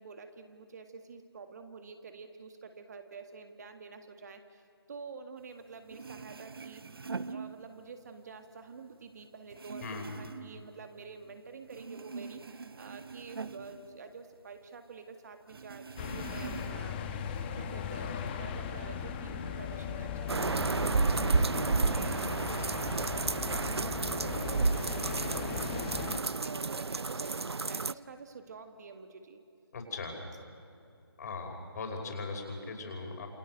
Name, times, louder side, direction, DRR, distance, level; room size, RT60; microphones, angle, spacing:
voice 1, 0.0-6.8 7.3-17.0 17.6-21.0 21.3-22.8 23.2-29.4, right 5 dB, 40° right, 7 dB, 1.9 m, -48 dB
sound 1, 5.6-5.7 5.9-8.1 8.4-11.4 11.7-14.7 14.9-15.0 15.5-17.0 17.4-18.1, right 5 dB, 65° right, 0.9 m, -44 dB
voice 2, 9.8-10.1 29.7-30.2 31.2-33.3, left 3 dB, 40° left, 2 dB, 5.5 m, -39 dB
sound 2, 16.0-26.2, left 7 dB, 25° left, 1.6 m, -38 dB
sound 3, 20.3-27.9, right 4 dB, 85° right, 0.6 m, -31 dB
28.0 x 26.0 x 6.6 m, 2.5 s
figure-of-eight pair, 150°, 13 cm